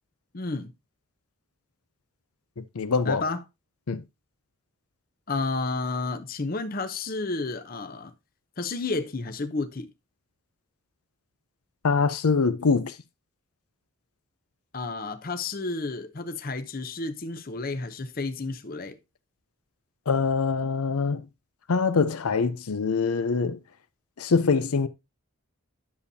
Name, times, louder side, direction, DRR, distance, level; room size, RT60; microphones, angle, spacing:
voice 1, 0.3-0.7 3.0-3.4 5.3-8.1 8.6-9.9 14.7-19.0, left 3 dB, 40° left, 0.7 m, -31 dB
voice 2, 2.6-3.2 3.9-4.0 11.8-12.9 20.1-21.3 21.7-23.6 24.2-24.9, left 4 dB, 85° left, 0.6 m, -24 dB
10.5 x 7.0 x 2.7 m
head